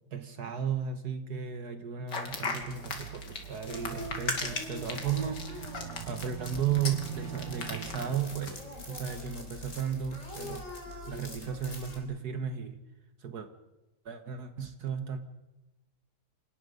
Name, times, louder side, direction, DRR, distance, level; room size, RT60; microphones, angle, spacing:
voice 1, 0.1-5.7 6.1-10.7 11.1-12.8 13.2-13.5 14.1-15.2, right 8 dB, 65° right, 8 dB, 1.8 m, -34 dB
sound 1, 2.1-8.6, left 4 dB, 85° left, 3.2 m, -37 dB
sound 2, 2.3-8.6, right 12 dB, 90° right, 1.5 m, -44 dB
sound 3, 3.6-12.0, left 1 dB, 45° left, 4.6 m, -44 dB
28.0 x 18.0 x 5.3 m, 1.0 s
omnidirectional pair, 1.8 m